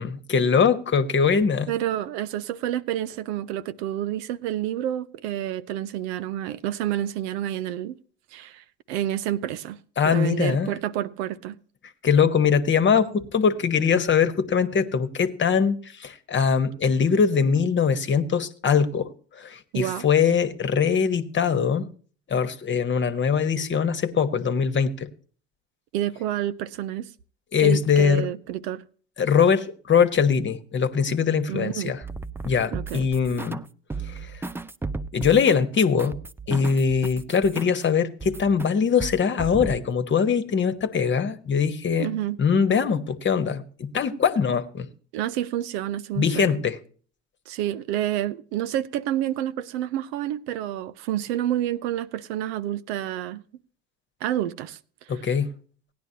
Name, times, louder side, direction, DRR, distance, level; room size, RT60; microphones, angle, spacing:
voice 1, 0.0-1.7 10.0-10.7 12.0-21.9 22.3-25.1 27.5-28.3 29.2-32.0 32.4-33.6 34.0-34.4 35.1-36.2 36.5-42.1 42.4-44.9 46.2-46.8 55.1-55.5, left 6 dB, 35° left, 1.2 m, -22 dB
voice 2, 1.7-8.0 8.3-9.8 10.0-11.6 19.7-20.0 25.9-27.1 27.6-28.8 31.5-31.9 32.7-33.1 42.0-42.4 45.1-46.6 47.5-53.4 54.2-54.8, right 12 dB, 75° right, 0.7 m, -29 dB
sound 1, 32.0-33.6 33.9-37.8 38.2-38.7 39.0-39.8, right 3 dB, 5° right, 0.4 m, -34 dB
16.5 x 10.5 x 2.8 m
hypercardioid pair, 70°, 33 cm